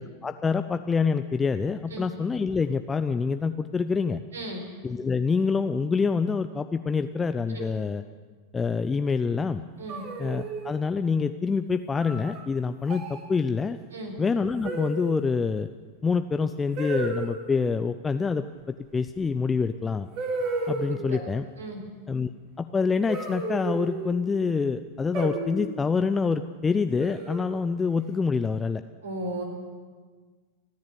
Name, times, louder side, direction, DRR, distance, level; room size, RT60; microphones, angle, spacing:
voice 1, 0.0-4.2 4.8-8.0 8.5-9.6 10.2-13.8 14.2-15.7 16.0-18.4 18.9-20.1 20.7-21.5 22.1-22.3 22.6-28.8, left 5 dB, 15° left, 9 dB, 0.6 m, -26 dB
voice 2, 4.3-4.6 7.5-7.7 9.8-10.0 13.9-14.1 20.9-21.2 21.6-21.8 29.0-29.4, right 1 dB, 70° right, 4 dB, 4.6 m, -35 dB
sound 1, 9.9-10.8 12.0-12.4 12.9-13.2 14.6-15.3 16.8-17.4 19.3-19.4 20.2-21.1 23.1-24.2 25.1-25.8 27.0-27.6, right 3 dB, 40° right, 3.5 m, -32 dB
30.0 x 10.5 x 8.4 m, 1.5 s
figure-of-eight pair, 90°, 0 cm